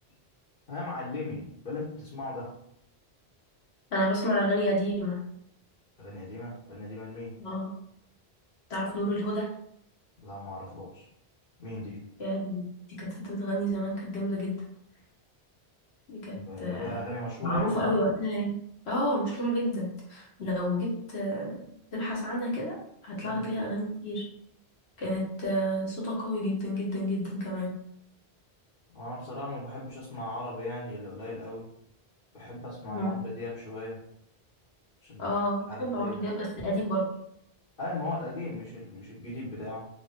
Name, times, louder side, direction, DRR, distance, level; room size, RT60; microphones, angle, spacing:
voice 1, 0.7-2.5 6.0-7.3 10.2-11.1 11.6-12.0 16.3-18.0 23.2-23.4 28.9-31.7 32.3-34.0 35.0-35.4 35.7-36.2 37.8-39.9, left 2 dB, 55° left, -9 dB, 1.2 m, -38 dB
voice 2, 3.9-5.2 7.4-7.7 8.7-9.5 12.2-12.6 13.0-14.5 16.1-17.0 17.4-18.6 18.8-21.6 21.9-22.8 23.0-24.2 25.0-27.7 32.9-33.2 35.2-37.0, equal, 80° left, -4 dB, 1.4 m, -30 dB
3.1 x 2.6 x 3.5 m, 0.71 s
omnidirectional pair, 1.1 m